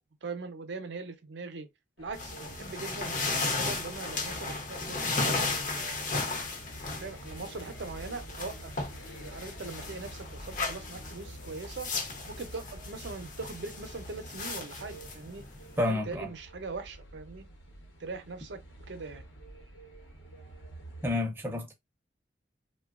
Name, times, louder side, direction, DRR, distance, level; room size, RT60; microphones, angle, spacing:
voice 1, 0.2-1.7 2.0-6.0 6.8-8.7 9.1-11.9 12.3-15.4 15.9-17.5 18.0-18.6 18.9-19.2, right 3 dB, 70° right, 0.6 m, -41 dB
sound 1, 2.0-21.1, right 1 dB, 80° left, 0.9 m, -49 dB
sound 2, 2.1-15.8, left 3 dB, 45° left, 0.6 m, -35 dB
voice 2, 15.8-16.3 21.0-21.7, left 2 dB, 10° right, 0.6 m, -29 dB
3.0 x 2.2 x 2.3 m
head